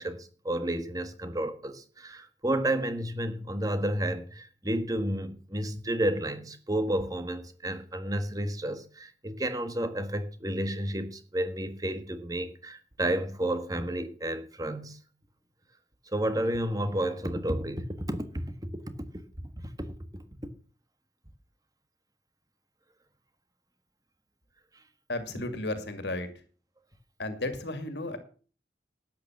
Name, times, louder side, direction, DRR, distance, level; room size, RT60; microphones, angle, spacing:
voice 1, 0.0-15.0 16.1-18.4, right 1 dB, 20° right, 1.5 m, -31 dB
voice 2, 25.1-26.3 27.2-28.2, left 2 dB, 75° left, 2.2 m, -33 dB
12.0 x 9.1 x 7.2 m
head